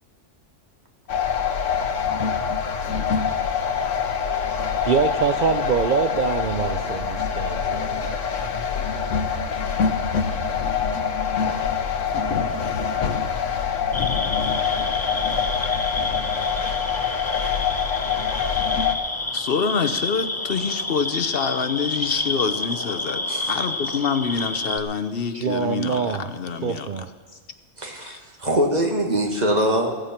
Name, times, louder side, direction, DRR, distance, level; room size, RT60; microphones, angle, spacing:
sound 1, 1.1-18.9, left 6 dB, 80° left, 1.3 m, -25 dB
voice 1, 4.8-7.8 25.3-26.3 26.6-27.1, right 6 dB, 55° right, 8 dB, 0.6 m, -24 dB
voice 2, 11.8-12.1 16.9-17.0 17.4-17.5 18.0-18.1 23.3-23.5 27.8-29.9, right 1 dB, 35° right, 2 dB, 1.9 m, -24 dB
sound 2, 13.9-24.8, left 2 dB, 15° left, 0.6 m, -29 dB
voice 3, 19.3-27.0 28.0-28.2, left 5 dB, 55° left, 9 dB, 1.0 m, -26 dB
16.0 x 14.5 x 4.5 m, 1.4 s
omnidirectional pair, 1.3 m